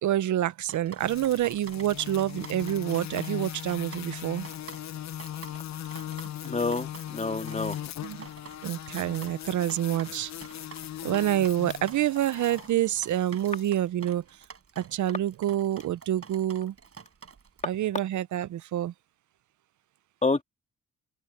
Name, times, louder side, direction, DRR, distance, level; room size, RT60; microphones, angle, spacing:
voice 1, 0.0-4.5 8.0-8.2 8.6-10.3 11.0-14.2 14.8-16.7 17.6-18.9, right 12 dB, 75° right, 0.8 m, -27 dB
Drip, 0.6-17.6, right 6 dB, 50° right, 7.8 m, -48 dB
sound 1, 1.0-13.7, left 11 dB, 65° left, 0.9 m, -39 dB
voice 2, 6.4-7.8 20.2-20.4, left 3 dB, 25° left, 2.0 m, -28 dB
open air
supercardioid pair, 55°, 30 cm